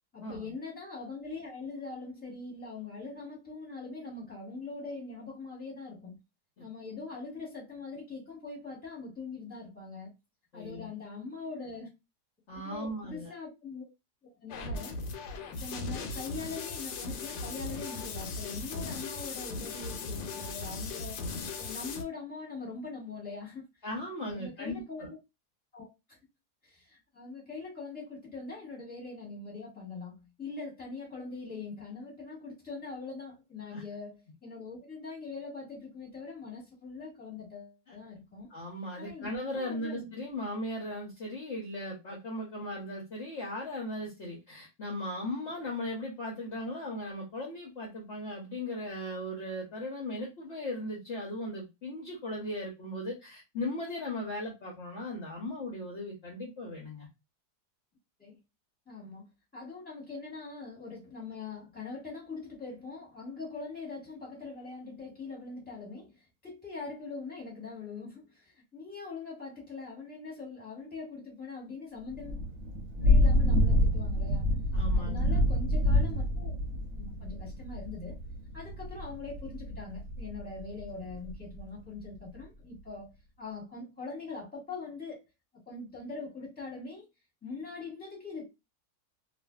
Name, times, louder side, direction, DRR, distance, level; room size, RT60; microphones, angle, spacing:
voice 1, 0.1-6.2 6.6-10.1 10.5-11.9 12.6-13.9 14.4-15.0 15.5-21.3 21.6-23.6 24.2-25.2 25.7-26.2 26.6-38.5 39.0-40.1 58.2-58.4 58.9-59.2 59.5-66.1 66.4-72.4 73.0-74.5 74.9-76.5 77.0-78.2 78.5-83.1 83.4-85.2 85.7-87.1 87.4-88.5, left 4 dB, 5° left, 1.1 m, -42 dB
voice 2, 10.5-10.9 12.5-13.3 23.8-25.1 33.7-33.8 38.5-57.1 74.7-75.6, left 1 dB, 55° left, 0.9 m, -37 dB
sound 1, 14.5-22.0, left 4 dB, 85° left, 1.2 m, -38 dB
Thunder / Rain, 72.1-81.6, left 1 dB, 65° right, 0.9 m, -28 dB
2.5 x 2.5 x 2.2 m
omnidirectional pair, 1.7 m